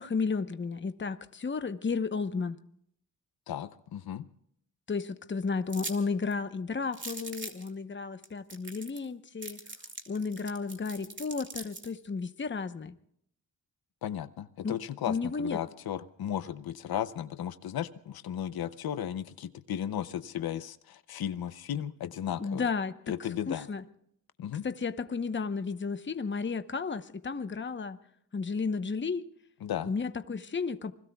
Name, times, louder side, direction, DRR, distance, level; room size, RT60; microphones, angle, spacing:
voice 1, 0.0-2.6 4.9-9.6 10.1-13.0 14.6-14.8 15.1-15.6 22.4-22.9 23.2-23.8 24.6-28.0 28.3-29.3 29.9-30.9, left 4 dB, 30° left, 10 dB, 1.0 m, -33 dB
voice 2, 3.5-4.3 14.0-22.7 23.1-23.7 24.4-24.7 29.6-29.9, left 10 dB, 90° left, 13 dB, 0.7 m, -35 dB
candy wrapper unwrap B, 5.7-6.0 6.3-6.4 6.9-7.7 8.2-8.3 8.5-9.1 9.4-11.9, right 3 dB, 35° right, 3.0 m, -41 dB
28.5 x 21.0 x 2.3 m, 0.68 s
cardioid pair, 80°, 35 cm